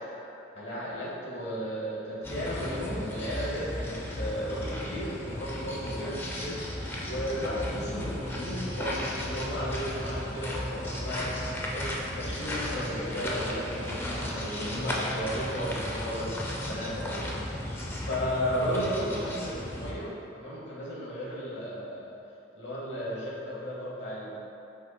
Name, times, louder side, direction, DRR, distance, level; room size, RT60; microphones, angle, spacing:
voice 1, 0.5-6.6 7.0-16.3 16.7-22.2 22.5-24.3, equal, 70° left, -5 dB, 1.1 m, -34 dB
sound 1, 2.2-19.9, left 1 dB, 10° left, 0.4 m, -35 dB
4.3 x 2.7 x 4.0 m, 2.8 s
head